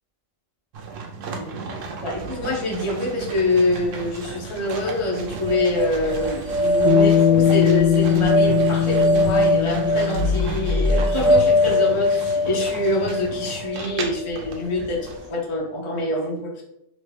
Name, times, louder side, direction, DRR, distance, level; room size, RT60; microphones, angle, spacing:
sound 1, 0.7-15.3, right 4 dB, 80° right, 1.0 m, -34 dB
voice 1, 1.9-16.6, left 2 dB, 30° left, -3 dB, 0.7 m, -25 dB
sound 2, 5.4-14.6, left 1 dB, 60° right, 1.4 m, -22 dB
Bass guitar, 6.8-11.3, left 9 dB, 70° left, 1.2 m, -21 dB
3.1 x 2.8 x 3.2 m, 0.78 s
omnidirectional pair, 1.3 m